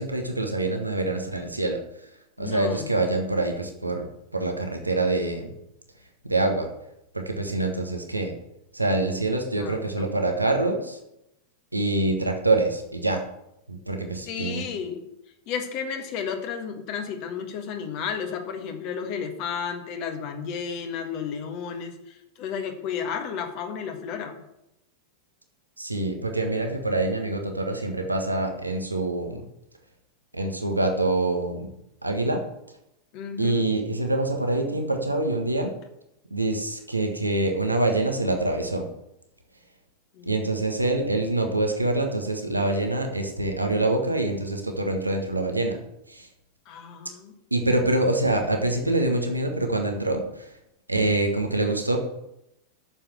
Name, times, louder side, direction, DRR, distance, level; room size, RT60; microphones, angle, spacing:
voice 1, 0.0-1.8 2.4-5.5 6.2-6.7 7.1-8.3 8.7-11.0 11.7-13.2 13.7-14.6 25.8-29.4 30.3-31.7 32.0-32.4 33.4-35.7 36.3-38.9 40.2-45.8 46.1-46.3 47.5-50.5 50.9-52.0, right 2 dB, 85° right, 3 dB, 1.4 m, -25 dB
voice 2, 2.4-3.0 9.6-10.1 14.3-15.0 15.5-24.4 33.1-33.7 40.1-40.3 46.6-47.3, left 7 dB, 45° left, 5 dB, 1.6 m, -33 dB
8.7 x 7.0 x 7.5 m, 0.85 s
figure-of-eight pair, 90°, 0 cm